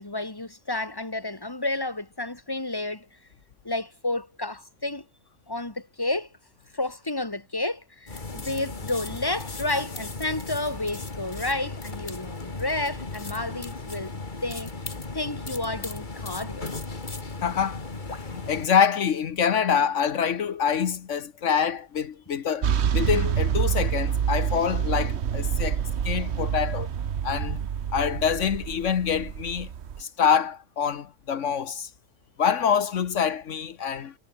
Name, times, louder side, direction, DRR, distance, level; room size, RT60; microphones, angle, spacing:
voice 1, 0.0-3.2 3.6-5.1 5.5-6.3 6.7-14.1 14.4-14.7 15.1-16.7, left 2 dB, 15° left, 2.4 m, -31 dB
sound 1, 8.1-18.7, left 3 dB, 40° left, 2.3 m, -36 dB
voice 2, 17.4-17.8 18.1-26.9 27.2-27.6 27.9-29.7 30.0-31.9 32.4-34.1, left 7 dB, 75° left, 1.4 m, -26 dB
sound 2, 22.6-30.0, right 8 dB, 60° right, 1.2 m, -27 dB
omnidirectional pair, 1.3 m